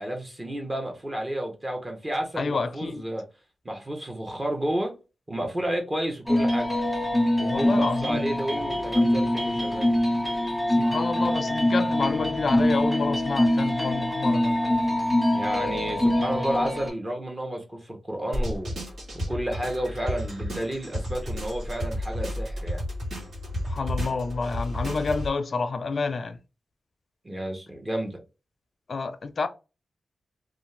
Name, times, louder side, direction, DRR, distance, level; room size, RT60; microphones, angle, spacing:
voice 1, 0.0-3.2 3.6-4.9 5.3-6.7 7.4-9.9 15.3-18.7 19.3-22.8 27.2-28.2, right 1 dB, 20° right, 0.8 m, -31 dB
voice 2, 2.4-3.0 7.5-8.3 10.7-14.5 23.6-26.4 28.9-29.5, left 4 dB, 50° left, 0.4 m, -29 dB
sound 1, 6.3-16.9, left 1 dB, 5° right, 1.2 m, -24 dB
sound 2, 18.3-25.3, left 1 dB, 75° right, 1.4 m, -32 dB
2.5 x 2.4 x 3.2 m
wide cardioid pair, 100°, 0 cm